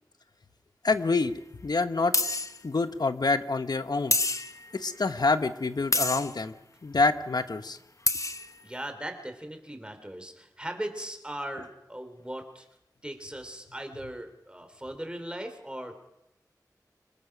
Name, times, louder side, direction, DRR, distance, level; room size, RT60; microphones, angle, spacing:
voice 1, 0.8-1.3 1.6-2.2 2.6-4.2 4.7-6.5 6.8-7.8, left 3 dB, 70° left, 10 dB, 1.1 m, -26 dB
sound 1, 0.9-1.0 2.1-2.6 4.1-4.7 5.9-6.3 7.8-7.9 8.1-8.5, left 2 dB, 50° left, 1.0 m, -27 dB
voice 2, 8.6-12.6 13.0-16.0, right 1 dB, 15° right, 7 dB, 3.4 m, -38 dB
25.5 x 20.5 x 6.0 m, 0.87 s
wide cardioid pair, 55°, 7 cm